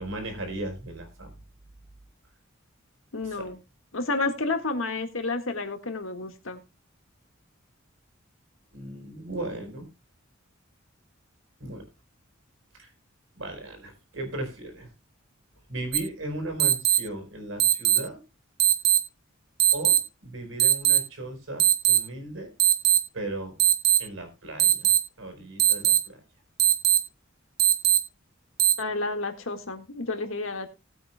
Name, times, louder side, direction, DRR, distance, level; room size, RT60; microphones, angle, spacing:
voice 1, 0.0-1.3 3.2-3.5 8.7-9.9 11.6-11.8 12.8-12.9 13.4-14.9 15.7-18.2 19.7-22.5 23.1-23.6 24.0-26.2, right 1 dB, 75° right, 4 dB, 4.5 m, -37 dB
voice 2, 3.1-3.6 3.9-6.6 28.8-30.7, left 3 dB, 80° left, 6 dB, 1.8 m, -30 dB
sound 1, 15.9-16.0 16.6-17.0 17.6-18.0 18.6-19.0 19.6-20.0 20.6-21.0 21.6-22.0 22.6-23.0 23.6-24.0 24.6-25.0 25.6-26.0 26.6-27.0 27.6-28.0 28.6-28.7, right 11 dB, 55° right, 1.4 m, -19 dB
19.5 x 8.5 x 2.3 m, 0.27 s
head